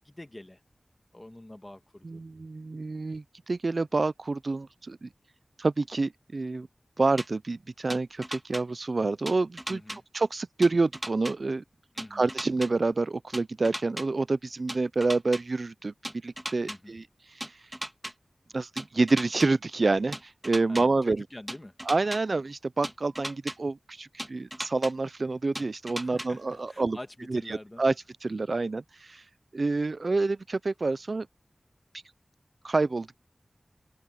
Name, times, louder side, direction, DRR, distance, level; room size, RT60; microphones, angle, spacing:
voice 1, 0.0-0.6 1.1-2.2 9.7-10.0 11.9-12.2 16.6-17.0 20.7-21.8 26.0-27.8, left 1 dB, 25° left, 1.9 m, -45 dB
voice 2, 2.0-5.1 5.6-6.7 7.0-9.8 10.1-11.6 12.1-15.9 16.2-17.6 18.5-21.2 21.9-27.0 27.3-27.9 28.2-29.2 29.5-31.3 32.6-33.1, right 3 dB, 65° right, 0.5 m, -28 dB
sound 1, 7.2-7.3 7.9-8.6 9.3-10.0 10.6-11.3 12.0-12.7 13.3-14.1 14.7-15.4 16.0-16.8 17.4-18.1 18.8-19.5 20.1-20.8 21.5-22.2 22.8-23.6 24.2-24.9 25.6-26.3, right 1 dB, 15° right, 1.8 m, -36 dB
open air
wide cardioid pair, 50°, 0 cm